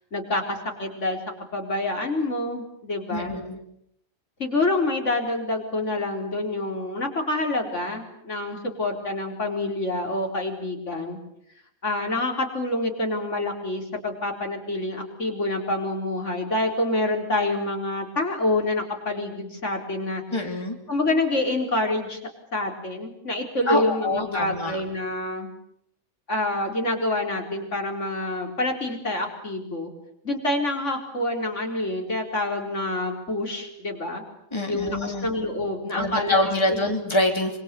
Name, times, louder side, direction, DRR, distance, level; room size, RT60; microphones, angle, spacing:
voice 1, 0.1-1.2 1.5-3.4 4.4-11.2 11.8-20.2 20.9-22.2 22.5-25.5 26.3-29.9 30.2-34.2 34.7-36.9, left 2 dB, 80° left, 2 dB, 4.5 m, -27 dB
voice 2, 3.1-3.6 20.3-20.8 23.7-24.8 34.5-35.3 35.9-37.6, left 1 dB, 20° left, 3 dB, 3.1 m, -25 dB
26.0 x 25.0 x 8.3 m, 0.76 s
omnidirectional pair, 1.2 m